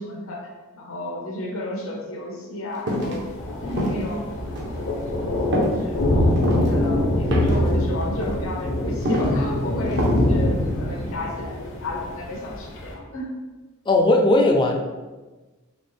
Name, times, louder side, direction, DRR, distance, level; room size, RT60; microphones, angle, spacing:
voice 1, 0.0-3.2 3.6-4.3 5.0-6.0 6.5-13.3, left 1 dB, 80° left, -1 dB, 1.0 m, -32 dB
sound 1, 2.9-3.2 3.7-4.1 4.6-4.8 5.5-5.8 6.3-6.7 7.3-7.7 8.0-8.4 9.0-9.4 9.9-10.3 10.6-10.7, equal, 60° right, 0.9 m, -25 dB
Thunder, 3.0-12.9, left 1 dB, 60° left, 0.7 m, -24 dB
voice 2, 13.9-14.7, left 2 dB, 20° left, 2 dB, 0.4 m, -18 dB
4.2 x 2.9 x 3.2 m, 1.2 s
head